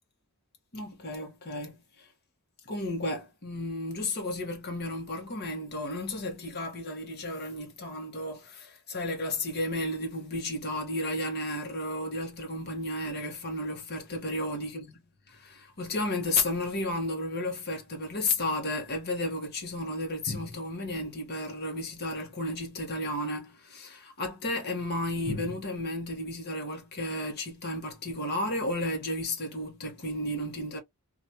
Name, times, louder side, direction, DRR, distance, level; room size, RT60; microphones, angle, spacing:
voice 1, 0.7-2.1 2.6-14.9 15.3-30.8, left 1 dB, 45° left, 1.1 m, -33 dB
3.0 x 2.4 x 2.7 m
head